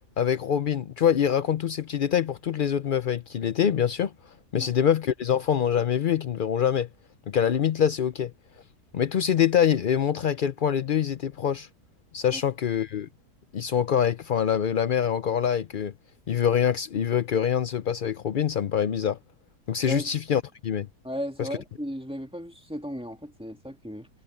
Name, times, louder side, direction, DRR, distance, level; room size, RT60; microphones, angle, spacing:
voice 1, 0.2-4.1 4.5-6.9 7.3-8.3 8.9-11.7 12.1-13.1 13.5-15.9 16.3-19.2 19.7-20.9 21.4-21.5, left 8 dB, 75° left, 0.4 m, -25 dB
voice 2, 21.0-24.1, equal, 5° right, 2.6 m, -35 dB
omnidirectional pair, 1.7 m